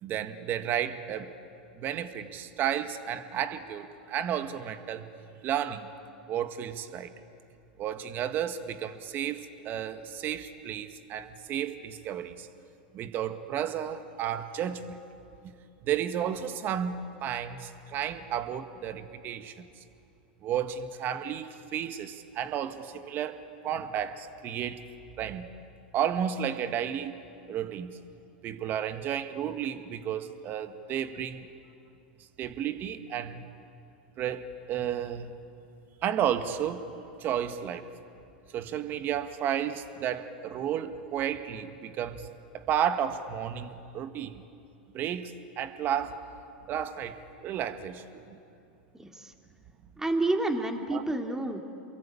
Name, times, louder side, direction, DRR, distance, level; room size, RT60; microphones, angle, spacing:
voice 1, 0.0-1.3 1.8-5.1 5.4-5.9 6.3-7.1 7.8-12.5 12.9-15.0 15.8-19.7 20.4-24.8 25.2-25.5 25.9-27.2 27.5-28.0 28.4-31.5 32.4-33.5 34.2-35.3 36.0-36.9 37.2-37.9 38.5-42.3 42.5-44.4 44.9-46.2 46.7-48.4 50.9-51.0, right 9 dB, 40° right, 9 dB, 1.8 m, -32 dB
voice 2, 48.9-49.3 50.0-51.6, right 2 dB, 10° right, 3 dB, 2.9 m, -29 dB
28.5 x 22.5 x 8.9 m, 2.6 s
hypercardioid pair, 95°, 5 cm